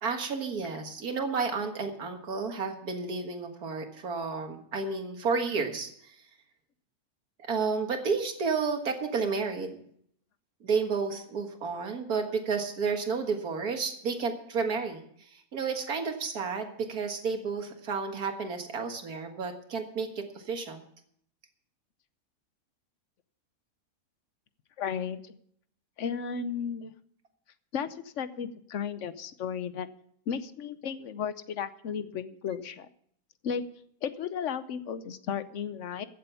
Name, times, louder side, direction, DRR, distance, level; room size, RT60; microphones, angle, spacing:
voice 1, 0.0-6.2 7.4-9.8 10.6-15.0 15.3-20.8, right 5 dB, 70° right, 5 dB, 2.2 m, -31 dB
voice 2, 24.8-25.4 26.0-26.9 27.7-29.9 30.3-32.9 33.4-33.6 34.0-36.0, left 7 dB, 55° left, 13 dB, 1.0 m, -34 dB
15.0 x 7.7 x 6.9 m, 0.66 s
omnidirectional pair, 1.7 m